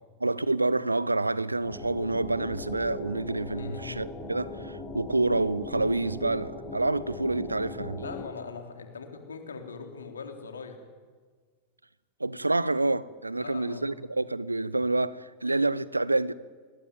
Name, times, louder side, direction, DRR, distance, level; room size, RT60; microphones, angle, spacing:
voice 1, 0.2-8.0 12.2-16.3, right 2 dB, 80° right, 0.8 m, -28 dB
sound 1, 1.6-8.3, left 2 dB, 20° left, 6.4 m, -39 dB
voice 2, 3.5-3.9 8.0-10.8 13.3-13.9, left 5 dB, 70° left, 3.6 m, -41 dB
27.5 x 20.5 x 9.3 m
figure-of-eight pair, 90°, 0 cm